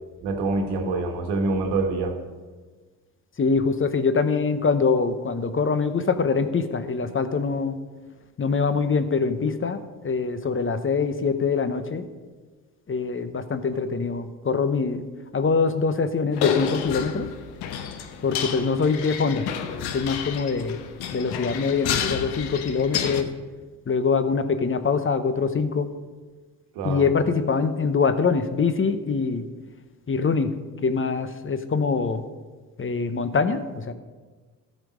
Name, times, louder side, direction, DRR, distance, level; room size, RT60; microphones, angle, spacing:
voice 1, 0.2-2.2 26.7-27.0, right 3 dB, 90° right, 4 dB, 1.3 m, -25 dB
voice 2, 3.4-7.8 8.4-12.0 12.9-15.0 15.3-17.3 18.2-20.8 21.1-23.3 23.9-25.9 26.8-29.5 30.1-30.5 30.8-32.2 32.8-33.9, left 5 dB, 35° left, 11 dB, 0.9 m, -24 dB
sound 1, 16.3-23.2, left 8 dB, 80° left, 0.9 m, -30 dB
13.5 x 5.2 x 5.2 m, 1.4 s
supercardioid pair, 55°, 38 cm